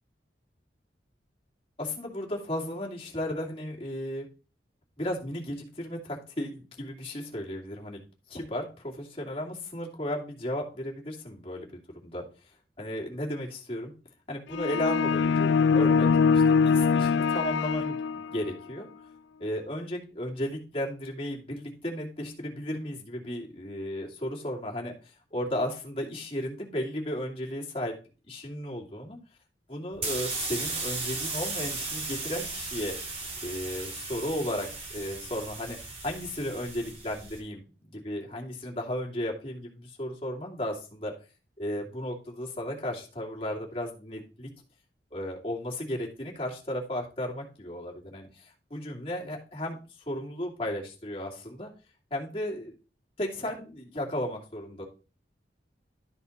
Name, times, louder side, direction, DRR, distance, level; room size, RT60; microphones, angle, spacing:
voice 1, 1.8-4.3 5.0-8.0 8.3-12.2 12.8-13.9 14.3-18.9 19.4-27.9 28.3-29.2 29.7-32.9 33.4-41.1 41.6-44.5 45.1-49.8 50.1-51.7 52.1-52.7 53.2-54.9, left 1 dB, 35° left, -2 dB, 2.4 m, -34 dB
sound 1, 14.5-18.5, left 5 dB, 80° left, 0.3 m, -23 dB
sound 2, 29.9-37.4, right 3 dB, 40° right, 2.1 m, -36 dB
12.5 x 4.3 x 4.1 m, 0.34 s
head